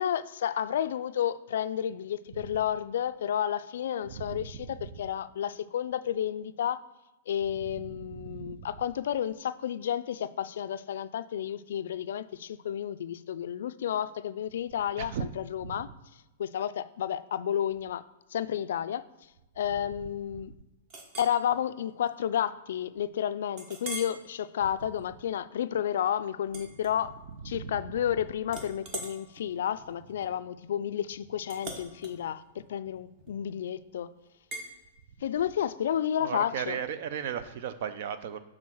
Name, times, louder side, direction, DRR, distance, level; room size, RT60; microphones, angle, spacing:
voice 1, 0.0-6.8 7.3-15.9 16.4-18.0 18.3-19.0 19.6-20.5 21.2-27.2 27.4-34.1 35.2-36.8, left 9 dB, 70° left, 0.3 m, -31 dB
voice 2, 4.1-4.9 8.0-8.7 15.0-15.3 15.6-15.8 27.4-27.7 36.2-38.4, right 8 dB, 50° right, 0.5 m, -36 dB
Chink clink, 20.9-21.4 21.9-22.1 22.5-22.6 23.6-24.2 24.7-25.0 26.5-27.4 27.7-28.1 28.5-33.6 34.5-34.7, right 2 dB, 30° right, 1.0 m, -43 dB
6.3 x 3.7 x 6.1 m
supercardioid pair, 165°, 0 cm